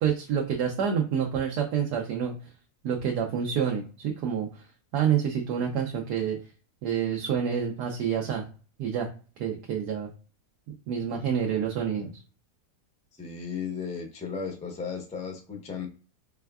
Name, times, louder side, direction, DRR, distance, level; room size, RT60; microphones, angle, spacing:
voice 1, 0.0-2.3 2.8-4.7 4.9-6.4 6.8-8.5 8.8-9.1 9.4-10.1 10.9-12.1, right 8 dB, 85° right, 0 dB, 1.2 m, -28 dB
voice 2, 13.2-15.9, left 6 dB, 10° left, 2 dB, 0.3 m, -35 dB
4.3 x 3.4 x 2.2 m, 0.36 s
omnidirectional pair, 1.7 m